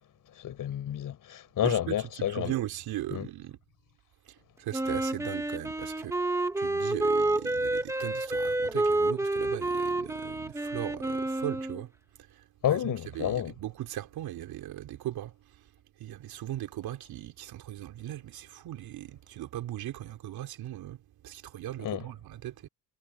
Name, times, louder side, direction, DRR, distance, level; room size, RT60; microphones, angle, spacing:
voice 1, 0.3-2.5 3.1-3.3 12.6-13.5 21.8-22.0, left 11 dB, 55° left, 6.7 m, -30 dB
voice 2, 1.6-3.6 4.3-11.9 12.2-15.6 16.0-22.7, right 13 dB, 65° right, 3.6 m, -38 dB
Wind instrument woodwind instrument, 4.7-11.8, right 2 dB, 5° right, 1.3 m, -29 dB
cardioid pair, 140°, 39 cm